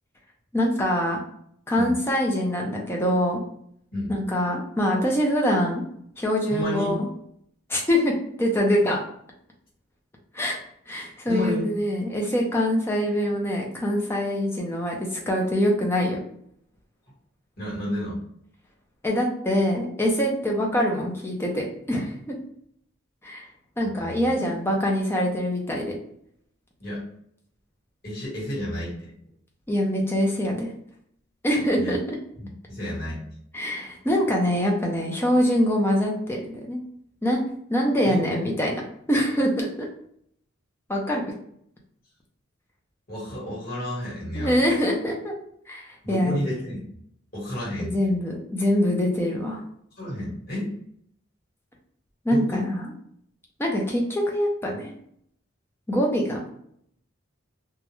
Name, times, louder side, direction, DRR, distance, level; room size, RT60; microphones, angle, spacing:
voice 1, 0.5-1.2 1.7-3.4 4.1-5.8 6.2-7.1 7.7-8.1 8.4-9.0 10.3-10.6 10.9-16.2 19.0-22.3 23.2-23.5 23.8-25.9 29.7-30.7 31.4-32.2 33.5-36.8 37.2-37.4 37.7-38.8 39.1-39.9 40.9-41.2 44.4-45.3 45.7-46.5 47.8-49.6 52.2-52.9 53.6-54.9 55.9-56.4, equal, 10° left, -1 dB, 0.4 m, -24 dB
voice 2, 6.5-6.9 11.3-11.7 17.6-18.2 23.8-24.3 26.8-27.0 28.0-29.1 31.8-32.0 32.4-33.2 38.0-38.2 43.1-44.6 46.0-46.8 47.3-48.0 50.0-50.7 52.3-52.7, left 1 dB, 45° left, -7 dB, 1.2 m, -31 dB
2.3 x 2.1 x 2.9 m, 0.70 s
head